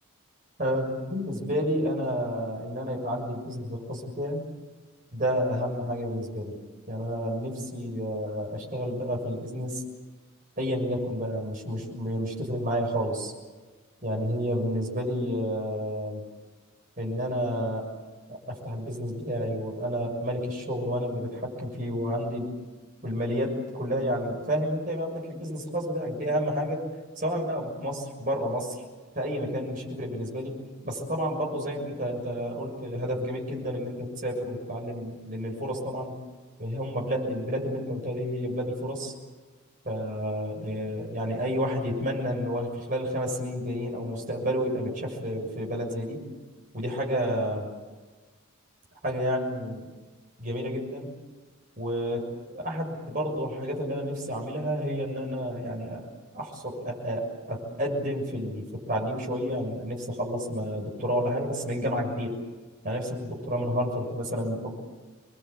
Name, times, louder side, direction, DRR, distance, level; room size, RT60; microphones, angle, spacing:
voice 1, 0.6-4.4 5.1-6.6 6.9-9.8 10.6-13.3 14.0-16.2 17.0-17.9 18.3-22.5 23.0-26.8 27.2-28.8 29.1-30.6 30.8-36.1 36.6-39.1 39.8-46.2 46.7-47.7 49.0-49.9 50.4-51.1 51.8-56.1 56.3-62.3 62.8-64.7, equal, 40° right, -1 dB, 6.8 m, -30 dB
27.0 x 21.5 x 8.3 m, 1.3 s
head